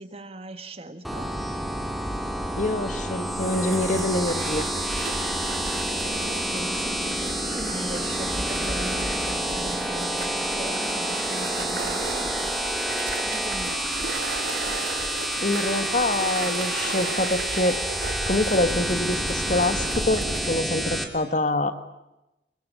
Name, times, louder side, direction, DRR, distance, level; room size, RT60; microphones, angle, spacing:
voice 1, 0.0-1.4 6.1-12.5 13.2-14.1, right 1 dB, 35° right, 9 dB, 1.9 m, -39 dB
sound 1, 1.0-21.0, equal, ahead, 2.6 m, -29 dB
voice 2, 2.6-4.7 15.4-17.8 18.3-21.7, left 2 dB, 45° left, 10 dB, 1.7 m, -25 dB
Waves surf, 3.4-20.6, right 4 dB, 90° right, 2.5 m, -35 dB
26.0 x 22.5 x 8.9 m, 0.94 s
head